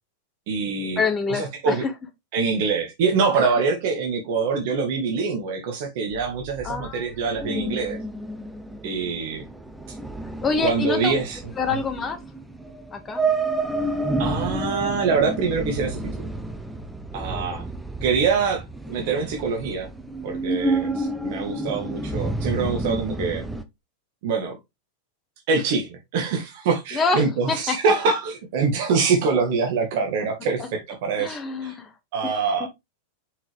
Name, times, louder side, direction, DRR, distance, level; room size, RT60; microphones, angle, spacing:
voice 1, 0.5-1.0 1.3-1.8 2.3-8.0 8.8-9.4 10.6-11.4 14.2-16.3 17.1-17.6 18.0-19.9 20.2-23.5 24.2-24.6 25.5-31.7 32.1-32.7, right 5 dB, 50° right, 1.7 m, -24 dB
voice 2, 1.0-1.9 6.6-7.1 7.4-7.9 10.4-11.1 11.6-12.2 12.9-13.2 17.3-17.7 20.9-21.0 26.9-27.8 31.2-31.9 32.2-32.7, left 4 dB, 20° left, 1.9 m, -27 dB
sound 1, 6.1-23.6, right 2 dB, 5° right, 0.9 m, -30 dB
5.8 x 5.3 x 3.4 m
figure-of-eight pair, 90°, 0 cm